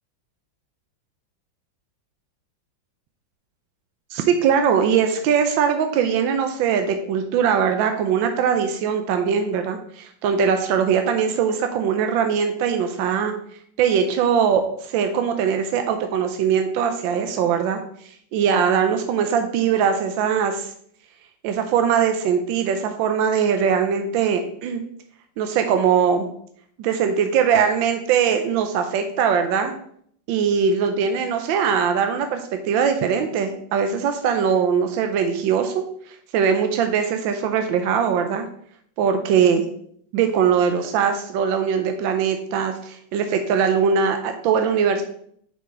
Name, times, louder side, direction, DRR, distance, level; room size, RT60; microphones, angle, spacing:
voice 1, 4.1-13.3 13.8-17.8 18.3-20.7 21.4-24.8 25.4-26.3 26.8-29.7 30.3-38.4 39.0-39.6 40.1-45.0, right 7 dB, 80° right, 6 dB, 1.4 m, -21 dB
6.2 x 5.8 x 3.9 m, 0.65 s
omnidirectional pair, 2.1 m